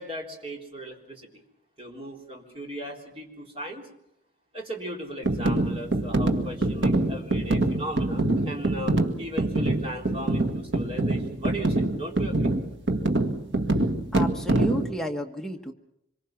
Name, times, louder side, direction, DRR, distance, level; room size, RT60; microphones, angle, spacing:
voice 1, 0.0-1.4 1.8-3.9 4.5-12.5, equal, 30° right, 0 dB, 3.8 m, -37 dB
sound 1, 5.2-14.9, right 2 dB, 85° right, 1.8 m, -25 dB
voice 2, 13.7-15.7, equal, 5° left, 2 dB, 1.3 m, -33 dB
26.0 x 23.0 x 6.0 m, 0.78 s
head